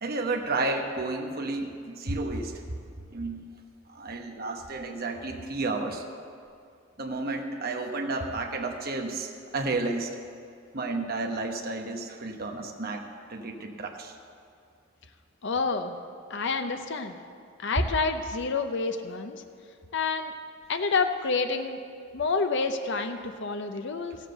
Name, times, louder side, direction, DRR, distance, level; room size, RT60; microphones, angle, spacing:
voice 1, 0.0-2.5 3.1-3.5 3.9-6.0 7.0-10.1 10.7-14.1, right 3 dB, 50° right, 3 dB, 1.2 m, -32 dB
voice 2, 15.4-15.9 16.3-17.2 17.6-19.4 19.9-20.3 20.7-21.8 22.1-24.2, left 4 dB, 65° left, 7 dB, 0.7 m, -28 dB
15.0 x 7.4 x 6.6 m, 2.3 s
head